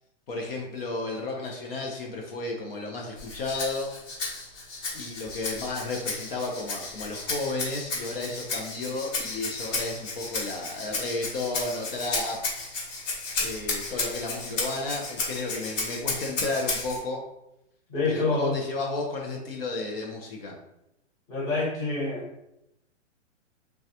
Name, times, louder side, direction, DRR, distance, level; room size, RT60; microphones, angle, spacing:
voice 1, 0.3-3.9 4.9-12.4 13.4-17.2 18.1-20.5, left 2 dB, 55° left, 1 dB, 0.6 m, -33 dB
Rattle (instrument), 3.2-17.0, left 3 dB, 85° left, 1.4 m, -33 dB
voice 2, 17.9-18.6 21.3-22.2, left 3 dB, 10° left, -8 dB, 0.7 m, -26 dB
3.2 x 2.3 x 2.7 m, 0.85 s
hypercardioid pair, 160°, 37 cm